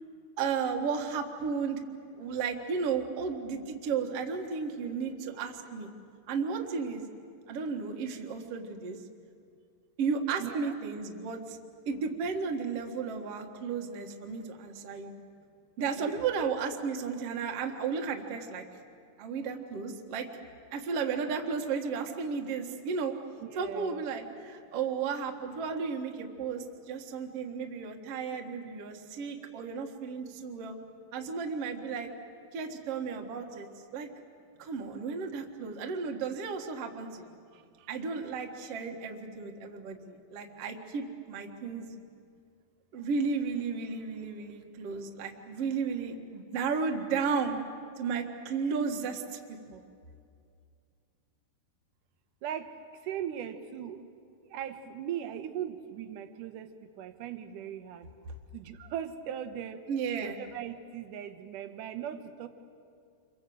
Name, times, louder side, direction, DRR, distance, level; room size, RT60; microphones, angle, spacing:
voice 1, 0.4-1.8 2.2-5.9 6.3-7.0 7.5-9.0 10.0-11.6 11.9-15.1 15.8-18.6 19.2-20.3 20.7-23.1 23.5-30.7 31.1-32.1 32.5-33.7 33.9-34.1 34.6-37.4 37.9-41.9 42.9-47.6 48.0-49.8 59.9-60.4, right 5 dB, 50° right, 2 dB, 2.1 m, -34 dB
voice 2, 10.4-10.8 16.0-16.5 23.4-24.1 52.4-52.7 53.1-54.0 54.5-56.7 57.0-58.1 58.5-59.8 60.2-62.5, right 9 dB, 65° right, 8 dB, 2.4 m, -39 dB
28.0 x 24.5 x 7.8 m, 2.4 s
omnidirectional pair, 4.5 m